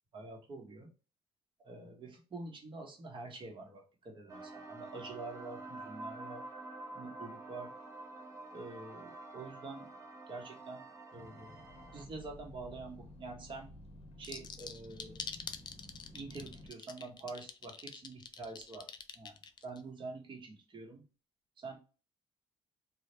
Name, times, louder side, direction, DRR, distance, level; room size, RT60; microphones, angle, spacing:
voice 1, 0.1-0.9 1.6-6.5 6.9-7.7 8.5-9.9 10.3-10.9 11.1-11.6 11.9-13.7 14.2-15.2 15.8-21.0 21.6-21.8, right 3 dB, 45° right, 2 dB, 1.0 m, -46 dB
sound 1, 4.3-12.1, right 2 dB, 25° right, 0.6 m, -48 dB
sound 2, 11.1-16.7, left 1 dB, 65° left, 0.7 m, -53 dB
sound 3, 14.2-19.8, left 6 dB, 40° left, 0.4 m, -45 dB
2.2 x 2.1 x 2.9 m, 0.33 s
cardioid pair, 75°, 11 cm